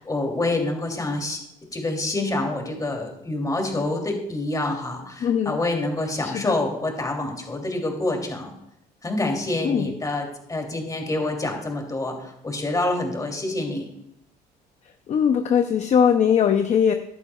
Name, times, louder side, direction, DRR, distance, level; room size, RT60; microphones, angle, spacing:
voice 1, 0.0-1.4 1.7-8.5 9.0-13.9, left 2 dB, 20° left, 2 dB, 3.0 m, -27 dB
voice 2, 5.2-5.6 6.2-6.5 9.6-9.9 15.1-16.9, left 7 dB, 45° left, 6 dB, 0.7 m, -20 dB
15.0 x 11.5 x 2.4 m, 0.82 s
cardioid pair, 110°, 17 cm